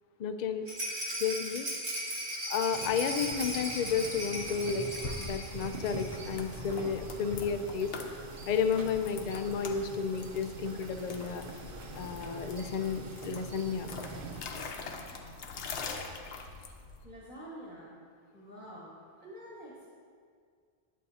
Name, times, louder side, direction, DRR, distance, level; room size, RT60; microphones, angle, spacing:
voice 1, 0.2-0.6 1.2-1.7 2.5-4.9 5.2-8.0 8.5-11.4 11.9-13.9, left 6 dB, 55° left, 8 dB, 0.5 m, -32 dB
Rattle, 0.7-6.4 6.6-6.7 7.0-7.1, equal, 80° right, 2.1 m, -37 dB
sound 1, 2.7-14.4, right 3 dB, 55° right, 0.8 m, -44 dB
sound 2, 5.0-17.0, left 4 dB, 80° left, 1.0 m, -44 dB
voice 2, 17.0-17.9 18.3-18.9 19.2-19.9, equal, 10° right, -8 dB, 1.3 m, -47 dB
10.5 x 8.3 x 2.8 m, 2.1 s
omnidirectional pair, 1.1 m